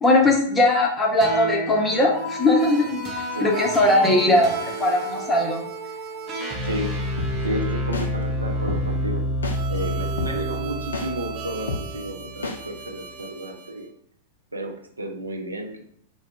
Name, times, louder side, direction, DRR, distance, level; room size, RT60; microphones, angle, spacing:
voice 1, 0.0-5.6, left 1 dB, 15° left, 0 dB, 0.5 m, -20 dB
sound 1, 1.2-13.7, equal, 30° right, 0.6 m, -30 dB
sound 2, 7.2-7.3 7.9-8.1 8.7-8.8 9.4-9.6 10.2-10.3 10.9-11.1 11.7-11.8 12.4-12.6, left 2 dB, 75° left, 0.4 m, -28 dB
voice 2, 7.4-9.2 9.7-13.9 14.5-15.9, right 1 dB, 85° right, 3 dB, 0.4 m, -32 dB
2.3 x 2.0 x 3.4 m, 0.65 s
figure-of-eight pair, 100°, 0 cm